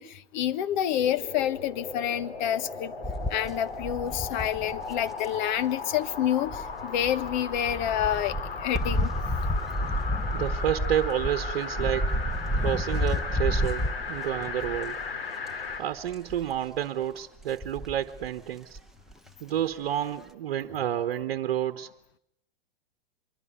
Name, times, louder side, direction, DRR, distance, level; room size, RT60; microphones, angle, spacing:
voice 1, 0.0-2.9 3.3-8.3 8.6-9.1, left 10 dB, 50° left, 13 dB, 1.4 m, -28 dB
sound 1, 0.9-15.9 16.3-16.4, left 4 dB, 70° left, 3.2 m, -36 dB
sound 2, 3.0-5.3 6.5-15.1 15.5-15.8 16.1-16.6 17.4-18.3 18.8-18.9 19.1-19.2, equal, ahead, 1.1 m, -31 dB
voice 2, 10.3-12.1 12.6-15.0 15.8-18.8 19.4-21.9, right 11 dB, 55° right, 9 dB, 1.2 m, -30 dB
25.0 x 23.5 x 9.0 m, 0.78 s
figure-of-eight pair, 105°, 30 cm